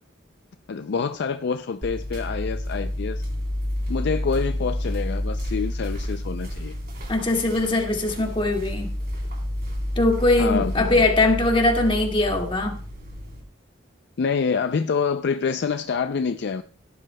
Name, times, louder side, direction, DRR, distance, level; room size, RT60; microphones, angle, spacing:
voice 1, 0.7-3.3 3.9-6.7 10.4-10.9 14.2-16.6, left 5 dB, 60° left, 0.4 m, -26 dB
sound 1, 1.8-13.4, left 1 dB, 50° right, 3.6 m, -30 dB
voice 2, 7.1-8.9 10.0-12.7, left 2 dB, 25° left, 2.0 m, -21 dB
17.0 x 11.0 x 2.2 m
head